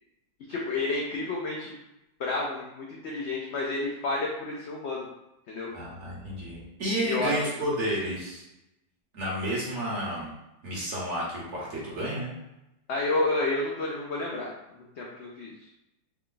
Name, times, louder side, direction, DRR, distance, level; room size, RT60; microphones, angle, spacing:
voice 1, 0.5-1.8 2.2-5.0 5.5-5.7 7.0-7.3 7.6-7.7 12.9-14.5 15.0-15.5, left 2 dB, 75° left, -2 dB, 0.6 m, -30 dB
voice 2, 5.7-8.4 9.1-10.3 10.6-12.3, right 1 dB, 50° right, -5 dB, 1.3 m, -31 dB
3.4 x 2.2 x 3.7 m, 0.90 s
omnidirectional pair, 1.7 m